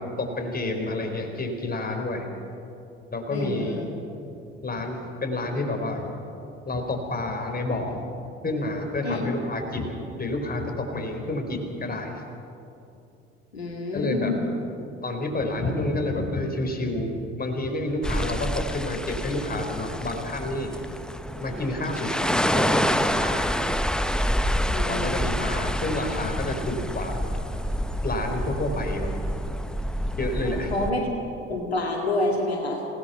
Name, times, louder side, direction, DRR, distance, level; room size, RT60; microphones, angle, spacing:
voice 1, 0.0-2.3 3.1-3.7 4.6-6.1 6.7-8.1 8.4-12.1 13.9-14.3 15.0-17.1 17.4-20.7 21.4-23.7 24.9-27.2 28.0-29.1 30.2-30.7, left 2 dB, 30° left, 4 dB, 4.6 m, -29 dB
voice 2, 3.3-3.9 9.0-9.2 13.5-14.4 24.7-25.7 30.4-31.1 31.5-32.9, left 2 dB, 90° left, 0 dB, 2.1 m, -28 dB
sound 1, 18.0-30.9, equal, ahead, 1.0 m, -27 dB
27.5 x 17.5 x 5.8 m, 2.7 s
figure-of-eight pair, 50°, 31 cm